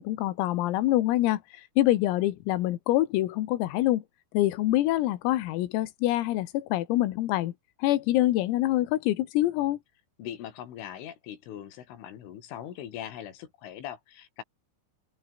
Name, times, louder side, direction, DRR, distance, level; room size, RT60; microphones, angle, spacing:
voice 1, 0.0-4.0 4.3-7.5 7.8-9.8, left 15 dB, 90° left, 4.2 m, -25 dB
voice 2, 10.2-14.4, left 10 dB, 70° left, 5.0 m, -41 dB
open air
omnidirectional pair, 5.9 m